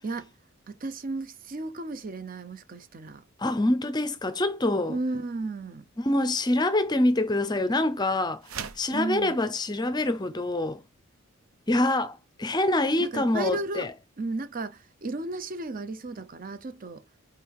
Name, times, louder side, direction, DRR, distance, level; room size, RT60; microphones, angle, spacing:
voice 1, 0.7-3.2 4.9-5.8 8.9-9.4 13.0-13.9 14.2-17.0, right 2 dB, 40° right, 0.7 m, -34 dB
voice 2, 3.4-5.0 6.0-8.4 8.8-10.8 11.7-13.9, left 1 dB, 20° left, 0.6 m, -25 dB
sound 1, 8.4-9.0, right 7 dB, 85° right, 0.9 m, -37 dB
5.3 x 4.7 x 4.7 m
head